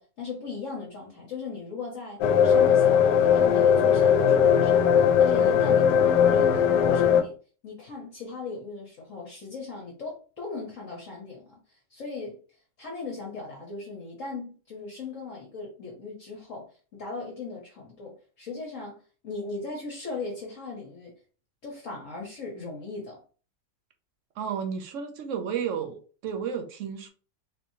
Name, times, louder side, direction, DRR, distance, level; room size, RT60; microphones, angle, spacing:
voice 1, 0.0-7.4 7.6-16.7 16.9-21.1 21.6-23.2, left 4 dB, 55° left, 1.2 m, -38 dB
sound 1, 2.2-7.2, left 8 dB, 85° left, 1.2 m, -19 dB
voice 2, 24.4-27.1, right 7 dB, 60° right, 0.9 m, -32 dB
4.0 x 3.0 x 2.7 m
omnidirectional pair, 1.8 m